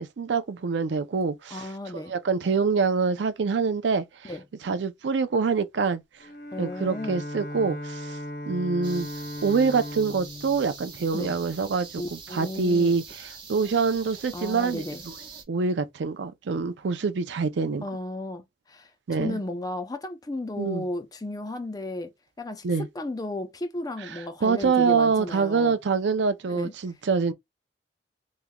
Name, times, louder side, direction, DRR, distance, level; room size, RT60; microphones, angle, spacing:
voice 1, 0.0-1.7 1.9-4.3 4.6-6.0 6.6-8.2 8.5-9.1 9.4-13.0 13.5-14.8 15.5-17.8 19.1-19.4 20.6-20.8 22.6-22.9 24.4-27.3, right 5 dB, 90° right, 0.5 m, -25 dB
voice 2, 1.5-2.1 4.2-4.4 6.5-7.2 11.1-11.4 12.0-13.0 14.3-15.0 17.8-22.1 22.4-25.8 26.5-26.7, left 1 dB, 20° left, 0.5 m, -34 dB
Bowed string instrument, 6.2-11.7, left 1 dB, 60° left, 0.8 m, -38 dB
sound 1, 8.8-15.4, right 5 dB, 25° right, 1.0 m, -44 dB
3.6 x 3.0 x 2.2 m
head